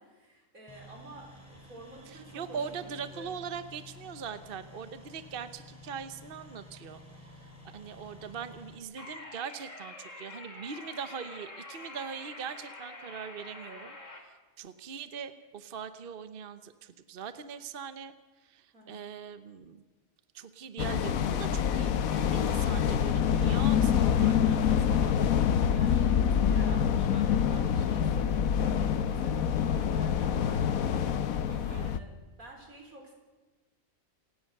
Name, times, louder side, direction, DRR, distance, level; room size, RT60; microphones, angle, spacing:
voice 1, 0.0-3.3 18.7-19.1 25.7-33.1, right 1 dB, 85° right, 2 dB, 5.0 m, -50 dB
sound 1, 0.7-8.8, left 2 dB, 10° left, 4.5 m, -51 dB
voice 2, 2.1-7.0 7.7-18.1 18.4-19.8 20.3-25.2 31.5-31.9, right 7 dB, 45° right, 11 dB, 1.0 m, -41 dB
sound 2, 9.0-14.2, left 2 dB, 65° left, 3.2 m, -46 dB
sound 3, 20.8-32.0, left 8 dB, 90° left, 1.3 m, -26 dB
28.0 x 17.5 x 6.6 m, 1.2 s
omnidirectional pair, 1.4 m